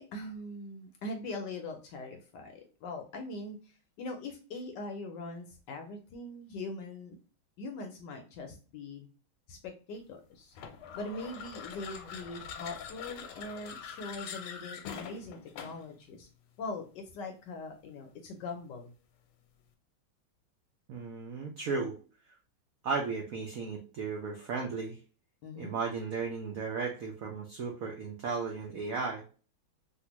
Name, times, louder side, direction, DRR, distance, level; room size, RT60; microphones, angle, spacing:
voice 1, 0.0-7.2 7.6-9.1 9.5-10.5 10.9-16.3 16.6-18.9 25.4-25.8, left 2 dB, 70° left, 4 dB, 1.1 m, -42 dB
sound 1, 10.5-15.9, left 7 dB, 90° left, 1.4 m, -44 dB
voice 2, 20.9-21.9 22.8-25.0 25.6-29.2, right 4 dB, 85° right, 0 dB, 0.7 m, -35 dB
3.3 x 2.4 x 2.8 m, 0.37 s
omnidirectional pair, 2.3 m